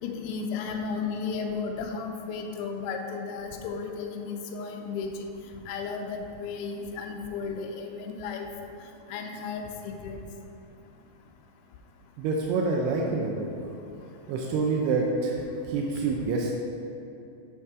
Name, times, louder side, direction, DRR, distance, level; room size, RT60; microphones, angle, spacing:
voice 1, 0.0-5.3 5.7-8.5 9.1-10.2, left 5 dB, 85° left, 2 dB, 2.4 m, -34 dB
voice 2, 12.2-13.5 14.3-16.5, right 3 dB, 85° right, -1 dB, 2.6 m, -27 dB
8.1 x 3.5 x 4.7 m, 2.7 s
omnidirectional pair, 4.6 m